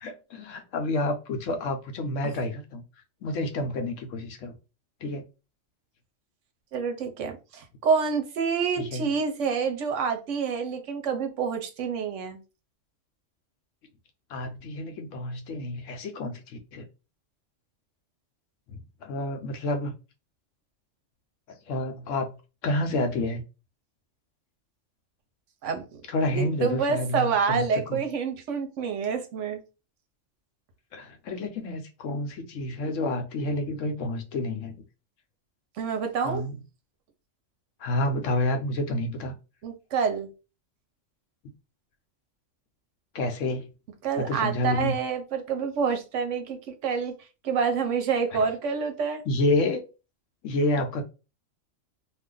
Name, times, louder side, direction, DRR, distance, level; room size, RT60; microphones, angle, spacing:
voice 1, 0.0-2.8 3.2-4.5 5.0-5.2 8.8-9.1 14.3-16.9 18.7-19.9 21.7-22.3 22.6-23.4 26.1-28.0 30.9-34.8 36.2-36.6 37.8-39.4 43.1-43.7 44.2-44.9 48.3-48.5 49.3-49.8 50.4-51.0, left 2 dB, 80° left, 1.0 m, -29 dB
voice 2, 6.7-12.4 25.6-25.8 26.3-29.6 35.8-36.4 39.6-40.3 44.0-47.1 47.4-49.2, right 6 dB, 75° right, 1.0 m, -27 dB
2.5 x 2.5 x 3.7 m
omnidirectional pair, 1.3 m